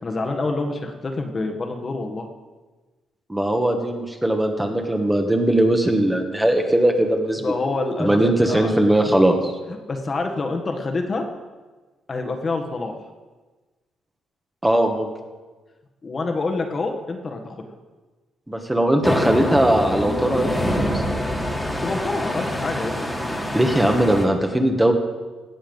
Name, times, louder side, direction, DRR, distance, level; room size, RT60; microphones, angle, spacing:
voice 1, 0.0-2.3 7.4-8.7 9.3-9.5 9.9-11.2 12.1-12.9 16.0-17.6 21.6-22.9, left 3 dB, 35° left, 4 dB, 1.6 m, -27 dB
voice 2, 3.3-7.5 8.0-9.5 14.6-15.1 18.5-21.0 23.5-24.9, right 1 dB, 10° right, 3 dB, 1.5 m, -19 dB
sound 1, 19.0-24.3, equal, 10° left, 2.1 m, -25 dB
17.5 x 7.2 x 5.4 m, 1.3 s
cardioid pair, 90°, 0 cm